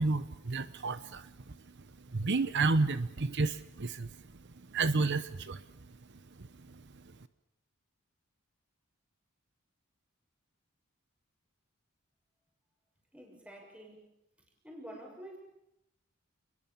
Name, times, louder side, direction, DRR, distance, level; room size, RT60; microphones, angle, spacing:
voice 1, 0.0-1.6 2.1-4.2 4.7-5.6 6.4-6.8, right 3 dB, 55° right, 13 dB, 0.9 m, -31 dB
voice 2, 13.1-14.1 14.4-15.4, equal, 5° right, 0 dB, 6.3 m, -49 dB
29.5 x 22.0 x 7.2 m, 0.81 s
head